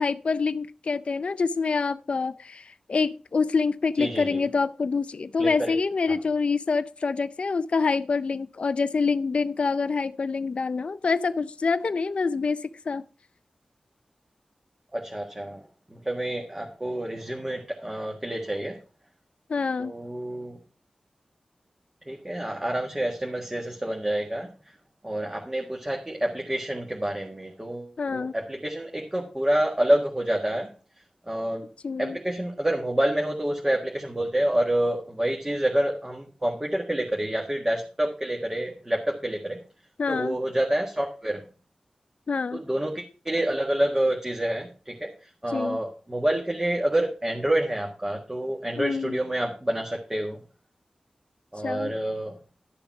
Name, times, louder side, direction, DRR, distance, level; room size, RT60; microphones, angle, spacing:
voice 1, 0.0-13.0 19.5-19.9 28.0-28.3 31.8-32.2 40.0-40.4 42.3-42.6 45.5-45.8 48.8-49.2 51.6-51.9, left 4 dB, 60° left, 0.4 m, -26 dB
voice 2, 4.0-4.4 5.4-5.7 6.1-6.2 14.9-15.6 15.9-18.8 19.8-20.6 22.1-24.5 25.0-30.7 31.3-31.7 32.0-39.6 40.1-41.4 42.5-50.4 51.5-52.4, right 1 dB, 20° right, 1.6 m, -28 dB
12.0 x 6.9 x 4.7 m
wide cardioid pair, 90°, 2 cm